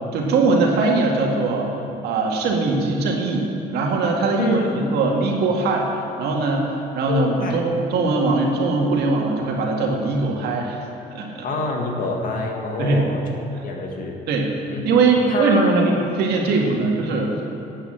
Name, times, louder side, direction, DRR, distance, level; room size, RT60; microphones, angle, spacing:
voice 1, 0.1-1.7 2.0-11.5 12.8-13.1 14.3-14.5 14.8-17.3, right 3 dB, 75° right, 0 dB, 2.0 m, -21 dB
voice 2, 4.4-4.8 7.1-7.6 11.4-13.2 13.6-14.2 14.7-15.0 15.3-15.7 16.6-16.9, left 3 dB, 55° left, 1 dB, 1.9 m, -27 dB
8.9 x 8.9 x 7.5 m, 3.0 s
cardioid pair, 110°, 17 cm